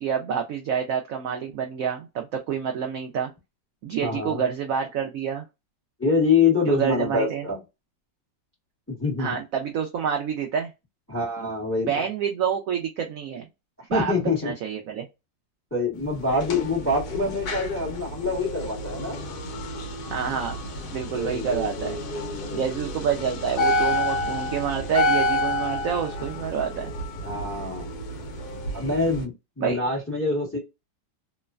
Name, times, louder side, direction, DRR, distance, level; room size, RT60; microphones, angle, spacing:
voice 1, 0.0-3.3 3.8-5.4 6.7-7.4 9.2-10.7 11.8-13.5 13.9-14.1 14.4-15.1 20.1-20.6 20.9-22.0 22.5-26.9 29.6-29.8, right 7 dB, 70° right, 0.8 m, -28 dB
voice 2, 4.0-4.4 6.0-7.6 8.9-9.4 11.1-12.1 13.8-14.5 15.7-19.2 21.0-22.6 27.2-27.9 28.7-30.6, left 3 dB, 10° left, 0.8 m, -26 dB
sound 1, 16.1-29.2, left 1 dB, 70° left, 1.1 m, -29 dB
3.1 x 2.1 x 2.3 m
omnidirectional pair, 1.9 m